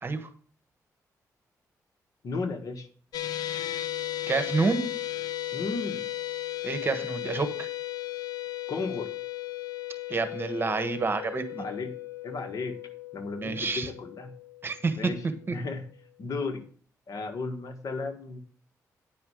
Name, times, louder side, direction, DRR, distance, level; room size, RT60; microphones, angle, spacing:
voice 1, 2.2-2.9 5.5-6.1 8.7-9.1 11.5-11.9 12.2-12.7 13.1-14.3 15.0-15.2 15.5-15.8 16.2-16.6 17.1-18.4, left 3 dB, 60° left, 6 dB, 1.6 m, -34 dB
sound 1, 3.1-15.5, left 14 dB, 85° left, 0.5 m, -36 dB
voice 2, 4.3-4.9 6.6-7.7 10.1-11.6 13.4-13.9 14.6-15.0 15.5-15.6, right 4 dB, 35° right, 10 dB, 1.4 m, -28 dB
9.2 x 5.4 x 6.4 m, 0.44 s
cardioid pair, 80°, 7 cm